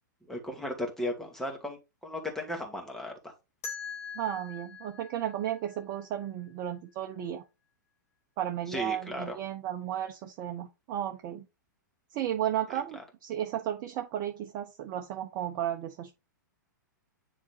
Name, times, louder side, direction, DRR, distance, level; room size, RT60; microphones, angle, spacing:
voice 1, 0.3-1.8 2.0-3.3 8.7-9.4, left 1 dB, 5° left, 2.2 m, -35 dB
sound 1, 3.6-6.5, left 6 dB, 50° left, 2.6 m, -43 dB
voice 2, 4.1-7.4 8.4-11.5 12.1-16.1, right 11 dB, 40° right, 1.0 m, -34 dB
9.7 x 4.2 x 2.7 m
figure-of-eight pair, 105°, 10 cm